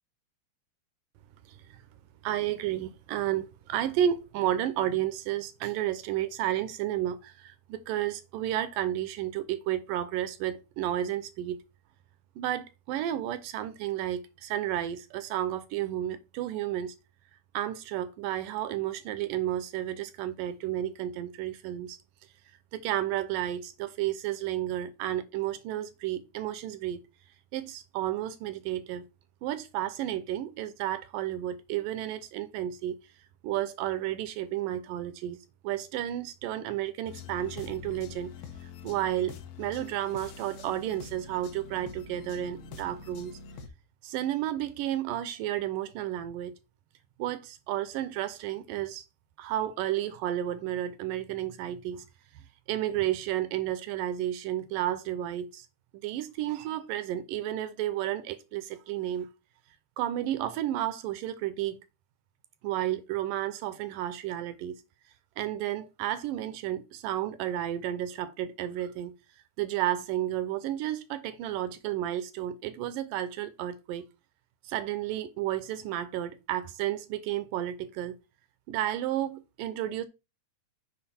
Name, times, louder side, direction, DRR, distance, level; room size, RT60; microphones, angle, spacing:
voice 1, 1.5-1.8 2.2-11.6 12.4-17.0 17.5-22.0 22.7-27.0 27.5-29.1 29.4-33.0 33.4-35.4 35.6-38.3 38.6-43.4 44.0-46.5 47.2-49.0 49.4-52.1 52.7-55.7 56.0-59.3 60.0-61.8 62.6-64.8 65.4-69.1 69.6-74.0 74.6-78.2 78.7-80.1, right 12 dB, 80° right, 2.0 m, -32 dB
sound 1, 37.1-43.7, left 6 dB, 75° left, 2.8 m, -45 dB
7.7 x 5.1 x 4.2 m
omnidirectional pair, 4.4 m